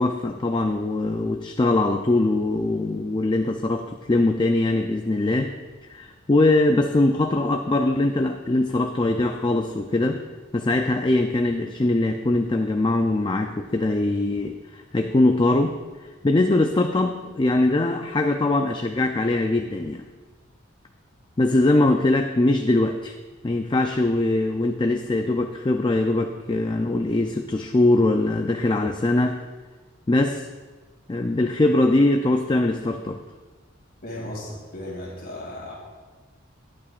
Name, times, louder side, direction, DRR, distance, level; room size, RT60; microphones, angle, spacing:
voice 1, 0.0-5.5 5.9-10.2 10.5-15.8 16.2-20.0 21.4-23.2 23.4-29.4 30.1-30.5 31.1-33.2, left 2 dB, 25° left, 5 dB, 0.4 m, -22 dB
voice 2, 34.0-35.7, left 1 dB, 50° left, -2 dB, 2.5 m, -35 dB
19.0 x 8.7 x 2.5 m, 1.3 s
head